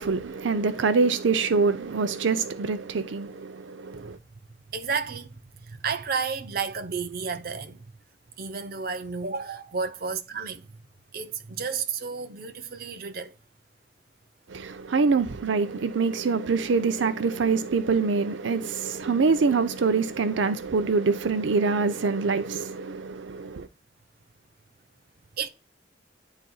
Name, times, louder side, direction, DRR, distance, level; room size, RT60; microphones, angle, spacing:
voice 1, 0.0-4.2 14.5-23.7, right 4 dB, 90° right, 0.6 m, -25 dB
voice 2, 4.7-7.9 8.4-10.7 11.1-13.3 25.4-25.5, right 5 dB, 55° right, 0.7 m, -32 dB
10.5 x 4.1 x 2.2 m
head